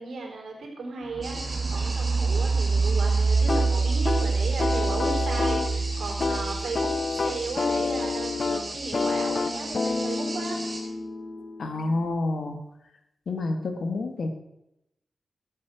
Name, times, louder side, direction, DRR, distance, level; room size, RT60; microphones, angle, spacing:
voice 1, 0.0-10.6, right 3 dB, 85° right, -1 dB, 4.1 m, -35 dB
sound 1, 1.1-8.9, right 4 dB, 45° right, 0.4 m, -26 dB
sound 2, 1.2-10.8, right 1 dB, 30° right, 4.2 m, -38 dB
sound 3, 3.5-12.1, left 4 dB, 45° left, 1.0 m, -29 dB
voice 2, 11.6-12.6 13.3-14.3, left 2 dB, 70° left, 6 dB, 1.8 m, -28 dB
14.0 x 8.6 x 6.4 m, 0.85 s
wide cardioid pair, 120°, 0 cm